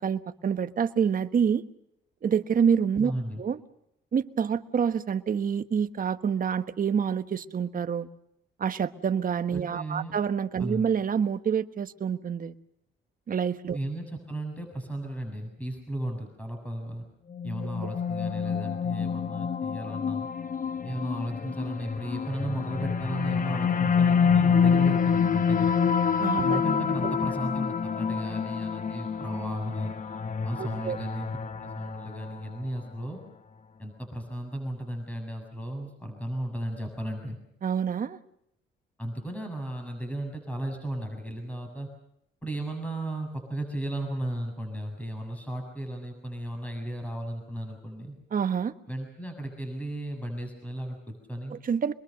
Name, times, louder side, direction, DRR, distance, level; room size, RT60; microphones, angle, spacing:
voice 1, 0.0-1.6 2.2-3.1 3.4-3.6 4.1-8.1 8.6-12.5 13.3-13.8 26.2-26.6 27.0-27.2 30.6-31.0 37.6-38.2 48.3-48.7 51.5-51.9, right 7 dB, 45° right, 10 dB, 1.3 m, -27 dB
voice 2, 3.0-3.4 9.5-10.1 10.6-10.8 13.7-17.0 17.4-20.3 20.8-25.9 26.4-29.9 30.4-31.3 31.6-33.2 33.8-37.4 39.0-41.9 42.4-48.2 48.9-51.6, right 1 dB, 5° left, 4 dB, 7.2 m, -35 dB
sound 1, 17.3-32.6, left 6 dB, 40° left, 1.2 m, -27 dB
26.0 x 21.5 x 6.7 m, 0.76 s
cardioid pair, 90°, 20 cm